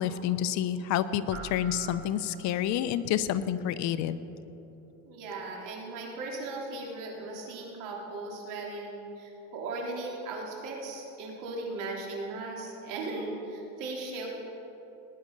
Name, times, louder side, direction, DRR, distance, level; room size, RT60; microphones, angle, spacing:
voice 1, 0.0-4.2, left 10 dB, 55° left, 12 dB, 0.8 m, -29 dB
sound 1, 1.3-2.9, right 3 dB, 45° right, 1.9 m, -44 dB
voice 2, 5.0-14.3, right 2 dB, 65° right, -1 dB, 3.4 m, -37 dB
19.0 x 9.9 x 5.3 m, 3.0 s
cardioid pair, 135°, 35 cm